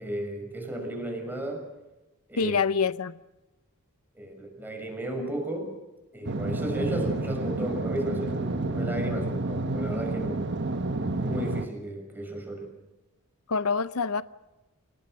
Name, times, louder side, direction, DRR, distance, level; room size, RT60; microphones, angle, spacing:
voice 1, 0.0-1.6 2.3-2.6 4.1-5.7 6.1-10.5 11.2-12.7, right 1 dB, 10° right, 6.1 m, -34 dB
voice 2, 2.4-3.2 13.5-14.2, left 5 dB, 85° left, 0.7 m, -26 dB
sound 1, 6.2-11.7, right 2 dB, 55° right, 1.3 m, -30 dB
29.0 x 18.5 x 6.5 m
head